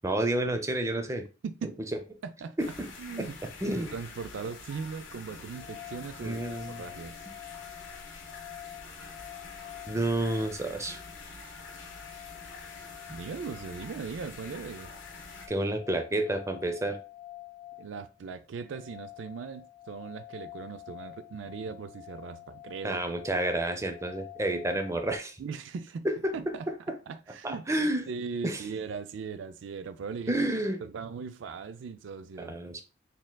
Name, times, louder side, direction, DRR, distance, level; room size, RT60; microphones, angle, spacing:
voice 1, 0.0-1.2 2.6-2.9 3.6-3.9 6.2-6.8 9.9-11.0 13.1-13.2 15.5-17.0 22.8-25.4 26.0-26.3 27.4-28.0 28.4-28.6 30.3-30.8 32.4-32.8, right 1 dB, 15° right, 0.5 m, -30 dB
voice 2, 1.4-1.8 2.2-2.6 3.0-3.4 3.9-7.2 13.1-14.9 17.8-23.0 25.4-26.1 26.3-26.7 27.1-27.6 28.1-30.3 30.8-32.5, right 5 dB, 70° right, 0.4 m, -39 dB
sound 1, 2.6-15.5, left 3 dB, 75° left, 1.1 m, -46 dB
sound 2, 5.5-25.2, left 15 dB, 20° left, 1.1 m, -48 dB
4.3 x 3.6 x 2.2 m
head